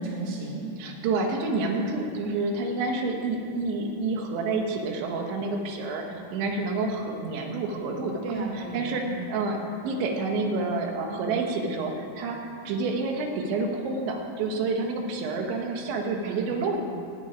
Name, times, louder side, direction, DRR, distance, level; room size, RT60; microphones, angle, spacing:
voice 1, 0.0-0.6 5.9-6.2 8.2-9.3 16.3-16.6, right 3 dB, 45° right, -2 dB, 2.5 m, -34 dB
voice 2, 0.8-8.3 8.7-12.4 12.7-16.8, right 3 dB, 90° right, 2 dB, 3.7 m, -28 dB
12.5 x 7.6 x 9.8 m, 2.4 s
omnidirectional pair, 5.1 m